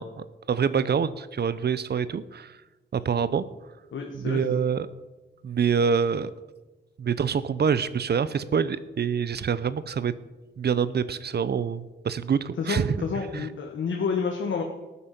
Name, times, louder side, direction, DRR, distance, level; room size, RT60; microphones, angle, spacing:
voice 1, 0.0-2.5 2.9-3.4 4.1-4.9 5.4-6.3 7.0-10.1 10.6-13.0 13.3-13.5, right 6 dB, 60° right, 16 dB, 0.6 m, -26 dB
voice 2, 3.9-4.6 12.6-14.6, left 5 dB, 80° left, 2 dB, 1.4 m, -29 dB
14.0 x 8.4 x 5.9 m, 1.1 s
wide cardioid pair, 120°, 19 cm